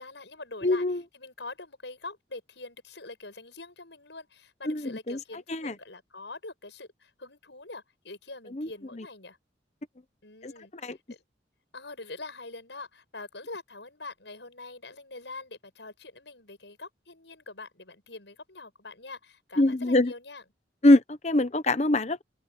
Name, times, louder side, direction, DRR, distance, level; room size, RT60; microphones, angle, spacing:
voice 1, 0.0-0.8 1.1-9.4 10.2-10.7 11.1-11.2 11.7-20.4, left 3 dB, 80° left, 7.3 m, -44 dB
voice 2, 0.6-1.0 4.7-4.8 5.1-5.2 5.5-5.7 8.5-8.7 9.0-9.1 10.4-10.5 10.8-11.0 19.6-20.1 20.8-22.2, left 1 dB, 40° left, 0.9 m, -23 dB
open air
head